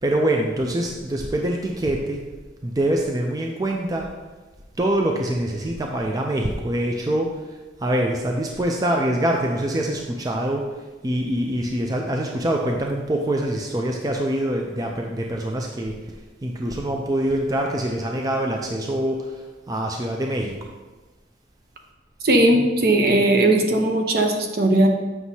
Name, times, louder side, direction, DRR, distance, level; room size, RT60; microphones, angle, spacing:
voice 1, 0.0-2.2 2.6-4.1 4.8-7.3 7.8-10.6 11.0-16.0 16.4-19.2 19.7-20.6, right 1 dB, 20° right, 1 dB, 0.4 m, -24 dB
voice 2, 22.2-24.9, right 1 dB, 55° right, 3 dB, 0.8 m, -18 dB
7.8 x 6.0 x 2.7 m, 1.3 s
head